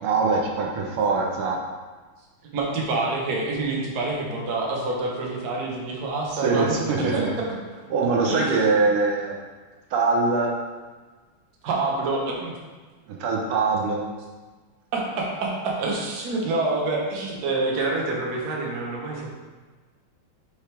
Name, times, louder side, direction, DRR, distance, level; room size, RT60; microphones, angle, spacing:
voice 1, 0.0-1.6 6.3-7.3 7.9-9.4 9.9-10.5 13.1-14.0, right 4 dB, 80° right, 0 dB, 1.7 m, -23 dB
voice 2, 2.5-7.2 8.2-8.6 11.6-12.6 14.9-19.3, right 3 dB, 55° right, -2 dB, 1.4 m, -27 dB
6.5 x 4.8 x 3.3 m, 1.3 s
omnidirectional pair, 2.4 m